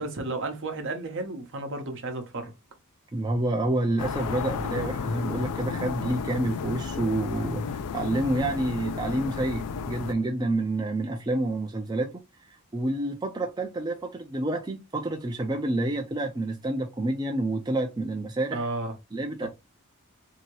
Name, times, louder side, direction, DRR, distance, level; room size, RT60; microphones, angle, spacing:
voice 1, 0.0-2.5 18.5-19.0 19.4-19.5, right 2 dB, 60° right, 0.8 m, -33 dB
voice 2, 3.1-7.6 7.9-12.1 12.7-18.7 19.1-19.5, right 2 dB, 20° right, 0.4 m, -28 dB
sound 1, 4.0-10.1, left 5 dB, 85° left, 0.4 m, -32 dB
2.8 x 2.7 x 2.9 m
head